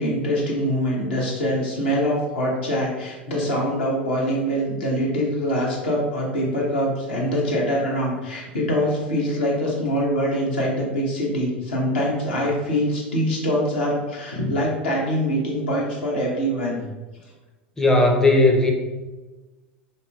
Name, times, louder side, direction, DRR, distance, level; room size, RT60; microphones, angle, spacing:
voice 1, 0.0-16.8, equal, 65° left, -3 dB, 1.1 m, -24 dB
voice 2, 17.8-18.7, left 2 dB, 10° left, 1 dB, 0.5 m, -16 dB
5.3 x 2.1 x 2.4 m, 1.2 s
figure-of-eight pair, 80°, 6 cm